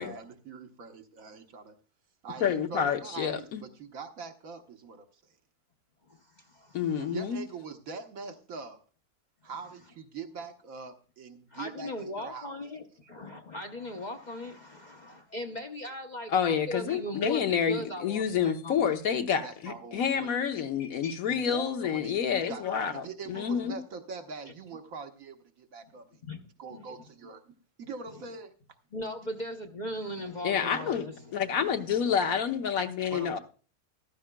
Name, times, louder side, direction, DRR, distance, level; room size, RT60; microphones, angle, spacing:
voice 1, 0.0-1.8 2.2-5.2 7.0-8.8 9.4-12.5 19.4-20.3 21.2-22.6 22.9-26.2 26.6-28.5 33.1-33.4, right 4 dB, 65° right, 1.4 m, -43 dB
voice 2, 2.4-3.6 6.7-7.4 16.3-23.8 30.4-31.0 31.3-33.4, left 7 dB, 70° left, 1.3 m, -28 dB
voice 3, 6.1-7.1 11.5-18.9 20.8-21.2 26.2-26.4 26.7-26.8 28.9-31.4, left 1 dB, 35° left, 0.8 m, -39 dB
14.5 x 12.5 x 2.2 m
omnidirectional pair, 1.6 m